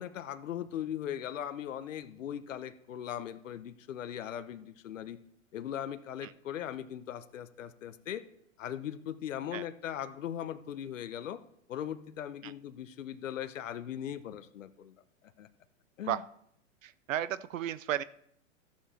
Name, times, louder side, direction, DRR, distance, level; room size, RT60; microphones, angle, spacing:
voice 1, 0.0-5.2 5.5-8.2 8.6-11.4 11.7-15.0 15.4-15.5 16.0-16.2, left 10 dB, 75° left, 12 dB, 1.0 m, -39 dB
voice 2, 16.8-18.0, right 11 dB, 80° right, 16 dB, 0.5 m, -34 dB
13.5 x 7.5 x 4.4 m, 0.70 s
hypercardioid pair, 120°, 38 cm